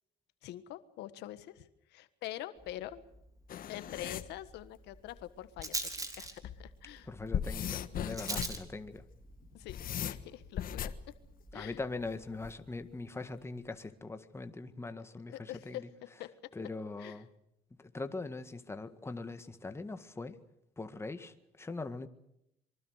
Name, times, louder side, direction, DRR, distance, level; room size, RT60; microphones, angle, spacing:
voice 1, 0.4-3.0 3.7-7.1 9.5-9.8 10.0-10.9 11.5-11.8 15.3-15.8 16.2-16.5 17.0-17.2, left 13 dB, 85° left, 12 dB, 1.5 m, -45 dB
Rattle, 2.6-12.5, right 2 dB, 20° right, 3.3 m, -45 dB
sound 1, 3.5-4.3 5.6-5.7 6.2-6.6 7.1-8.6 9.4-11.0 12.4-12.9, left 9 dB, 55° left, 1.4 m, -38 dB
voice 2, 7.0-9.1 11.5-15.9 16.5-17.3 17.7-20.4 20.8-22.1, left 3 dB, 15° left, 8 dB, 1.8 m, -41 dB
26.0 x 23.5 x 6.5 m, 0.79 s
cardioid pair, 110°, 17 cm